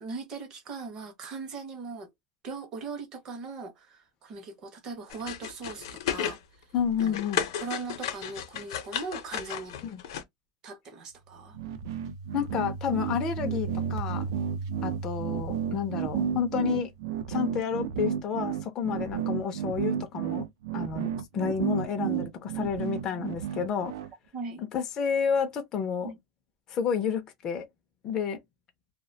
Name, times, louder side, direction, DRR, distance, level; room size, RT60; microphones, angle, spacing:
voice 1, 0.0-2.1 2.4-6.4 7.0-7.2 7.6-9.8 10.6-11.6 17.5-17.7 19.0-19.1 23.1-23.3 24.3-24.6 26.0-26.2, right 4 dB, 25° right, 0.6 m, -39 dB
sound 1, 5.1-6.4 6.8-10.2, left 9 dB, 70° left, 0.6 m, -33 dB
voice 2, 6.7-7.4 9.9-10.0 12.3-14.2 14.8-16.9 17.3-20.5 20.7-23.9 24.6-26.1 26.7-27.7 28.0-28.4, left 7 dB, 25° left, 0.4 m, -30 dB
sound 2, 11.3-17.0, right 4 dB, 55° right, 0.9 m, -37 dB
sound 3, 11.5-24.1, right 9 dB, 80° right, 0.4 m, -32 dB
2.3 x 2.1 x 2.6 m
supercardioid pair, 180°, 2 cm